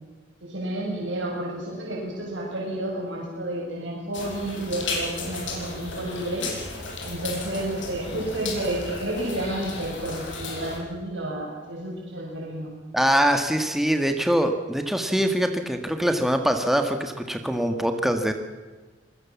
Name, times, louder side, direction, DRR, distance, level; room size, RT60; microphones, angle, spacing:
voice 1, 0.4-6.5 7.0-12.7, right 1 dB, 85° right, -3 dB, 6.6 m, -31 dB
sound 1, 4.1-10.8, left 3 dB, 85° left, 7.7 m, -34 dB
voice 2, 12.9-18.3, equal, ahead, 6 dB, 1.7 m, -23 dB
26.0 x 21.0 x 7.2 m, 1.3 s
head